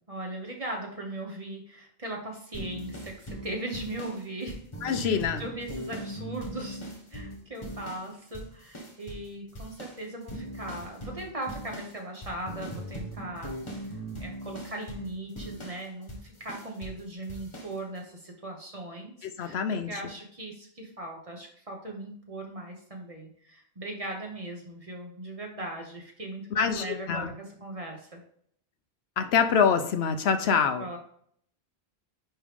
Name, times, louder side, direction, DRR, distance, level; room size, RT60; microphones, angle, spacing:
voice 1, 0.1-4.6 5.0-6.8 7.1-13.5 14.2-19.6 19.9-28.2 30.4-31.0, right 1 dB, 35° right, 0 dB, 1.4 m, -39 dB
sound 1, 2.5-8.1 8.3-9.3 9.5-17.0 17.3-17.7, right 1 dB, 30° left, 1.3 m, -40 dB
voice 2, 4.8-5.4 19.2-19.9 26.6-27.3 29.2-30.9, left 6 dB, 80° left, 8 dB, 0.9 m, -25 dB
9.7 x 3.3 x 3.5 m, 0.64 s
omnidirectional pair, 1.1 m